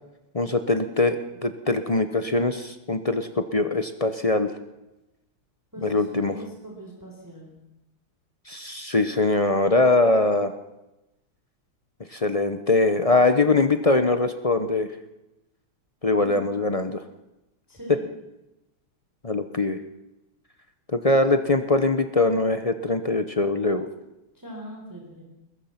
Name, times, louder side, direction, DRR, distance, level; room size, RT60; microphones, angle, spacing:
voice 1, 0.3-4.5 5.8-6.4 8.5-10.5 12.1-14.9 16.0-17.0 17.9-18.0 19.2-19.8 20.9-23.9, left 2 dB, 45° left, 9 dB, 0.4 m, -22 dB
voice 2, 5.7-7.5 16.2-16.4 17.7-18.1 24.3-25.2, right 1 dB, 10° right, -1 dB, 4.1 m, -40 dB
21.5 x 21.0 x 5.9 m, 0.95 s
omnidirectional pair, 2.3 m